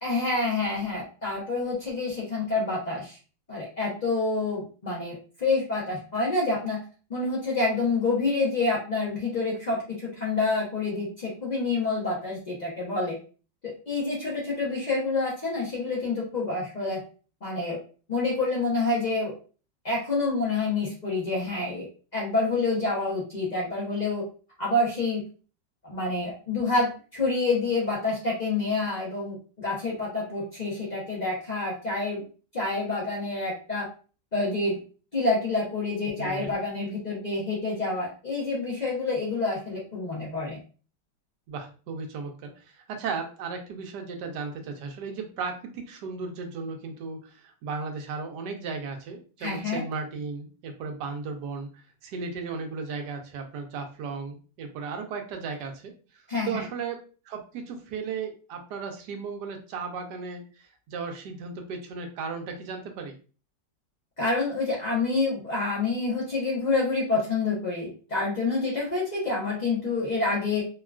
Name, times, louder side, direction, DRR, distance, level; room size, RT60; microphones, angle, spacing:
voice 1, 0.0-3.2 3.5-6.8 7.1-13.2 13.9-17.0 17.4-17.8 18.1-19.3 19.8-21.9 22.1-24.2 24.6-25.3 25.8-32.2 32.5-33.9 34.3-34.8 35.1-40.6 49.4-49.8 56.3-56.6 64.2-70.6, left 3 dB, 85° left, -5 dB, 0.3 m, -27 dB
voice 2, 36.2-36.6 41.5-51.7 52.0-55.9 56.5-57.0 57.3-60.4 60.9-63.1, right 5 dB, 70° right, 4 dB, 1.1 m, -35 dB
3.6 x 2.3 x 2.3 m, 0.37 s
omnidirectional pair, 2.0 m